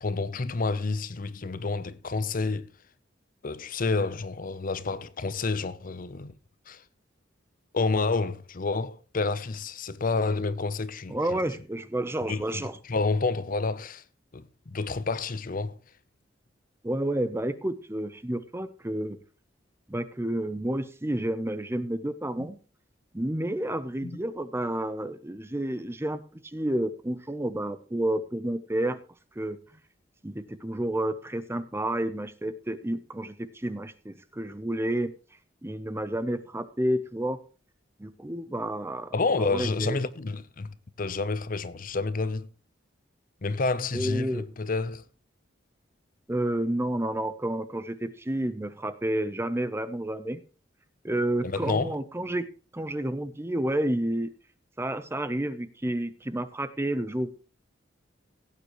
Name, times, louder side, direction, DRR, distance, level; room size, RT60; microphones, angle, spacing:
voice 1, 0.0-2.7 3.4-6.3 6.7-6.8 7.7-11.4 12.3-14.0 14.3-15.8 22.4-22.5 24.0-24.2 39.1-42.5 43.4-45.1 51.4-52.0, left 3 dB, 45° left, 0.7 m, -29 dB
voice 2, 11.1-12.8 16.8-19.2 19.9-22.6 23.1-29.0 29.4-29.6 30.2-35.1 35.6-37.4 38.0-40.0 43.9-44.4 46.3-50.4 51.0-52.5 52.7-54.3 54.8-57.3, right 1 dB, 15° right, 0.7 m, -30 dB
16.5 x 8.9 x 3.1 m
head